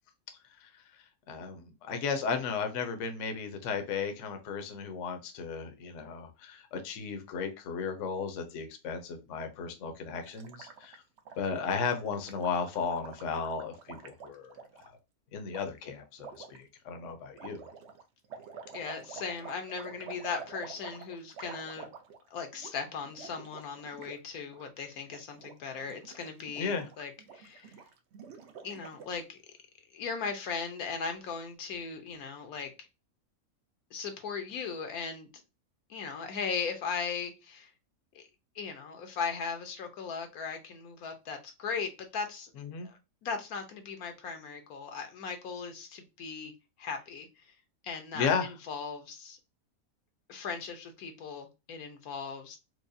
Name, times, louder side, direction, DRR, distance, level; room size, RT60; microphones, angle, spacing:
voice 1, 0.5-0.8 1.3-11.0 11.4-14.5 15.3-17.7 26.6-26.9 42.6-42.9 48.1-48.5, left 5 dB, 65° left, 1.0 m, -35 dB
Gurgling, 10.2-14.9 15.5-15.6 16.2-16.6 17.3-22.3 22.5-22.7 23.0-24.2 24.4-24.7 25.0-25.5 25.8-29.2, right 6 dB, 60° right, 0.8 m, -48 dB
voice 2, 18.7-21.9 22.3-27.7 28.6-29.4 29.9-32.7 33.9-35.3 35.9-37.7 38.1-38.2 38.5-42.5 42.8-46.5 46.8-47.3 47.8-49.4 50.3-52.6, left 5 dB, 80° left, 1.2 m, -38 dB
4.6 x 2.2 x 2.6 m
omnidirectional pair, 1.5 m